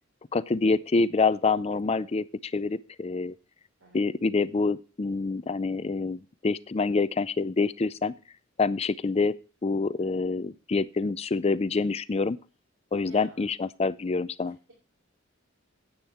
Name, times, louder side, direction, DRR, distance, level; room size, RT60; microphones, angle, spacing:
voice 1, 0.3-3.3 3.9-8.1 8.6-9.4 9.6-12.4 12.9-14.6, left 4 dB, 30° left, 17 dB, 0.4 m, -26 dB
voice 2, 13.0-13.5, right 2 dB, 75° right, -2 dB, 3.5 m, -51 dB
10.0 x 8.8 x 4.3 m, 0.33 s
head